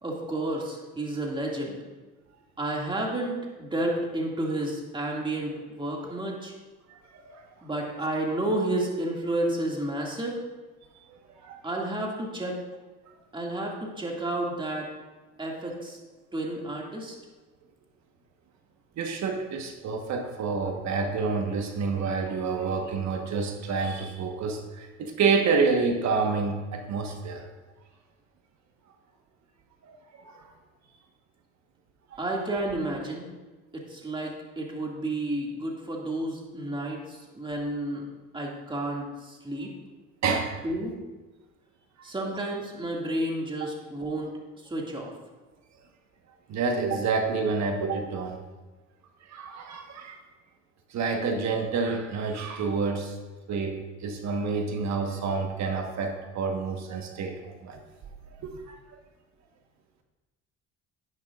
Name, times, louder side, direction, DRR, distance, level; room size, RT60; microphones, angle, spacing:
voice 1, 0.0-1.8 2.6-6.5 7.6-10.4 11.6-12.6 13.3-14.9 15.4-16.0 16.3-17.2 32.2-33.3 33.7-38.1 38.3-39.7 40.6-40.9 42.0-44.3 44.6-45.1, right 1 dB, 15° right, -1 dB, 2.1 m, -31 dB
voice 2, 11.1-11.7 13.6-13.7 19.0-27.5 29.8-30.5 32.1-32.2 40.2-40.5 46.5-48.4 49.3-50.2 50.9-53.2 53.5-57.8 58.4-58.8, right 4 dB, 60° right, 4 dB, 1.3 m, -28 dB
10.5 x 10.0 x 2.5 m, 1.2 s
supercardioid pair, 80°, 32 cm